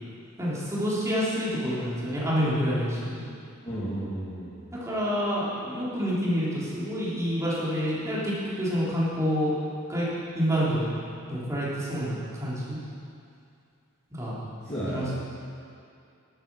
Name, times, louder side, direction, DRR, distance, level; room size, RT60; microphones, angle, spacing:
voice 1, 0.4-3.2 4.8-9.5 9.9-10.1 10.3-10.9 11.3-12.8 14.1-14.4 14.8-15.1, equal, 15° right, -8 dB, 3.3 m, -28 dB
voice 2, 3.6-4.7 14.6-15.2, right 1 dB, 30° left, -11 dB, 2.4 m, -33 dB
12.0 x 9.2 x 6.2 m, 2.5 s
head